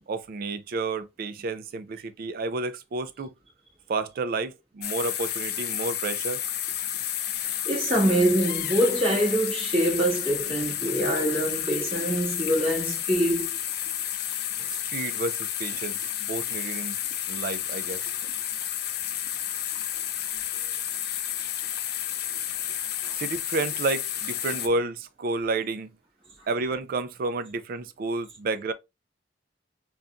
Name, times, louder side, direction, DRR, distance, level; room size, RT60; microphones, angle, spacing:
voice 1, 0.1-3.3 3.9-6.4 14.9-17.0 17.3-18.1 23.1-25.9 26.5-28.7, right 3 dB, 55° right, 0.3 m, -30 dB
sound 1, 4.8-24.7, left 10 dB, 60° left, 0.4 m, -31 dB
voice 2, 7.6-13.5 23.0-23.2, right 1 dB, 30° right, 1.5 m, -24 dB
4.0 x 2.2 x 2.4 m
head